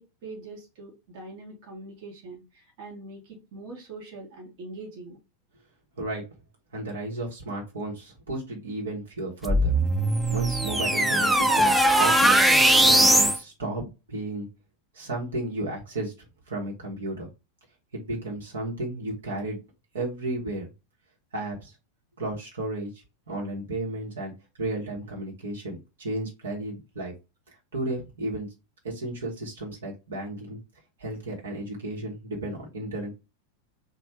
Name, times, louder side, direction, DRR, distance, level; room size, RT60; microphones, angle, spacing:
voice 1, 0.0-5.2, right 2 dB, 45° right, 0 dB, 1.4 m, -43 dB
voice 2, 6.0-6.3 6.7-9.7 10.3-12.4 12.8-14.5 14.9-16.1 16.5-17.3 17.9-19.6 19.9-20.7 21.3-21.7 22.2-22.9 23.3-24.3 24.6-27.1 27.7-28.5 28.8-30.6 31.0-33.1, right 2 dB, 65° right, -2 dB, 1.5 m, -33 dB
sound 1, 9.5-13.4, right 1 dB, 5° right, 0.4 m, -20 dB
3.3 x 2.6 x 4.4 m, 0.26 s
figure-of-eight pair, 90°, 0 cm